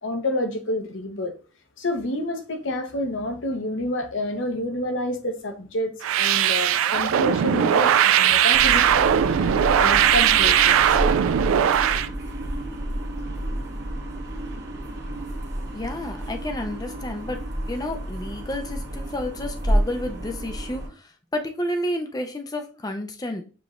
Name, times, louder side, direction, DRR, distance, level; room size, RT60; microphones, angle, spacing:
voice 1, 0.0-1.3 1.8-11.0 12.0-12.1, left 1 dB, 70° left, 0.8 m, -29 dB
sound 1, 6.0-12.1, right 9 dB, 90° right, 0.3 m, -19 dB
sound 2, 8.5-20.9, right 1 dB, 55° right, 1.0 m, -30 dB
voice 2, 15.7-23.4, left 1 dB, 20° left, 0.5 m, -31 dB
6.8 x 3.1 x 2.5 m
head